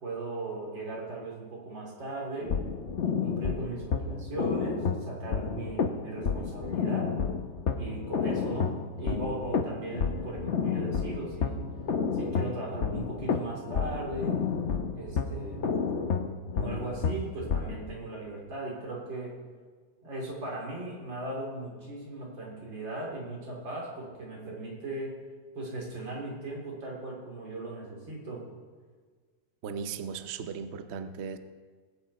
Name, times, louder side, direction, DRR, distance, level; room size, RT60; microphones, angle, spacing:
voice 1, 0.0-2.6 3.2-7.1 7.8-11.6 12.1-14.4 14.9-15.6 16.5-19.3 20.0-25.2 25.6-28.4, right 2 dB, 75° right, -3 dB, 4.1 m, -38 dB
sound 1, 2.4-17.9, left 6 dB, 50° left, 0.9 m, -30 dB
voice 2, 29.6-31.4, right 6 dB, 60° right, 9 dB, 0.7 m, -37 dB
20.5 x 8.5 x 4.2 m, 1.5 s
omnidirectional pair, 2.0 m